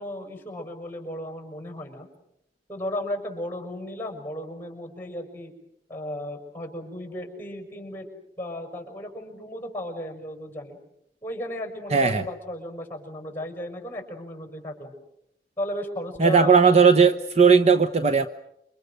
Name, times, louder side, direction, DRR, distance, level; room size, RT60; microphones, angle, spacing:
voice 1, 0.0-2.1 2.7-5.5 5.9-8.1 8.4-10.8 11.2-14.9 15.6-16.7, left 1 dB, 10° left, 5 dB, 6.1 m, -35 dB
voice 2, 11.9-12.2 16.2-18.3, right 5 dB, 40° right, 9 dB, 0.9 m, -17 dB
28.5 x 25.0 x 6.5 m, 0.77 s
head